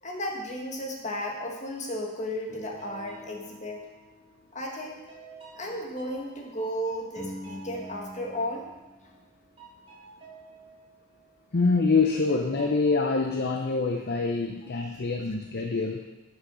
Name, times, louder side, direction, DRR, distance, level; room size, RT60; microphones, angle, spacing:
voice 1, 0.0-3.8 4.5-5.0 5.6-8.7 9.0-9.1, equal, 35° left, 0 dB, 1.8 m, -34 dB
sound 1, 2.5-4.4 4.8-9.3 9.6-11.5 12.0-13.2, equal, 30° right, 4.2 m, -46 dB
voice 2, 11.5-16.1, left 4 dB, 50° left, 3 dB, 0.7 m, -25 dB
11.5 x 6.5 x 6.3 m, 1.1 s
head